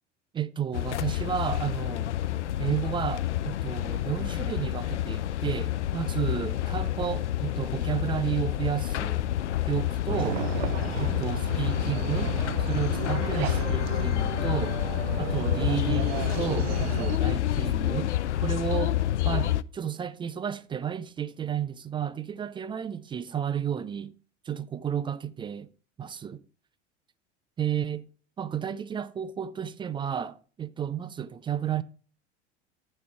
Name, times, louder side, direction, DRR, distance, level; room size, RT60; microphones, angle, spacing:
voice 1, 0.3-2.1 2.6-9.3 9.7-10.4 11.0-14.8 15.2-19.0 19.2-24.1 24.4-25.7 26.0-26.4 27.6-28.1 28.4-31.8, right 8 dB, 15° right, 0.4 m, -32 dB
sound 1, 0.7-19.6, left 13 dB, 75° left, 0.5 m, -28 dB
sound 2, 10.1-17.2, right 12 dB, 60° right, 0.8 m, -34 dB
13.5 x 5.4 x 4.6 m
figure-of-eight pair, 75°, 35 cm